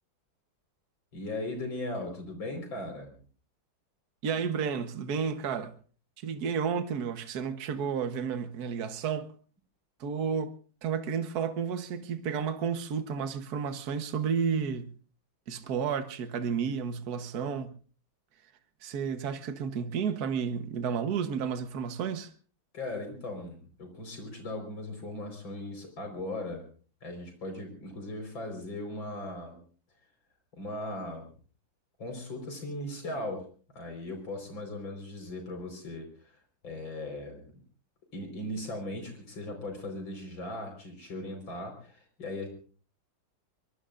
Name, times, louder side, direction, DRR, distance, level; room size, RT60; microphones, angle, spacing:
voice 1, 1.1-3.2 22.7-26.7 27.0-29.6 30.6-31.3 32.0-33.4 33.7-36.1 36.6-37.4 38.1-42.5, left 1 dB, 85° left, 5.3 m, -38 dB
voice 2, 4.2-5.7 6.2-9.3 10.0-14.9 15.5-17.7 18.8-22.3, right 7 dB, 55° right, 1.6 m, -32 dB
24.5 x 23.0 x 2.5 m
omnidirectional pair, 2.1 m